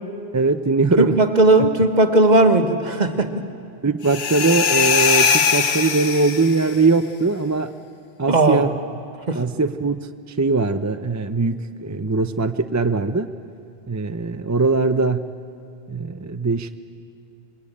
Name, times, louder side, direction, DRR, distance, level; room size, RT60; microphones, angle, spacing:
voice 1, 0.3-1.2 3.8-7.7 8.2-8.7 9.3-10.1 10.4-13.3 13.9-15.2 15.9-16.8, right 3 dB, 20° right, 9 dB, 0.5 m, -21 dB
voice 2, 1.0-3.3 8.3-8.7 9.3-9.4, right 2 dB, 45° right, 7 dB, 1.4 m, -16 dB
sound 1, 4.0-6.8, left 6 dB, 75° left, 1.2 m, -20 dB
26.0 x 22.0 x 8.6 m, 2.5 s
omnidirectional pair, 1.1 m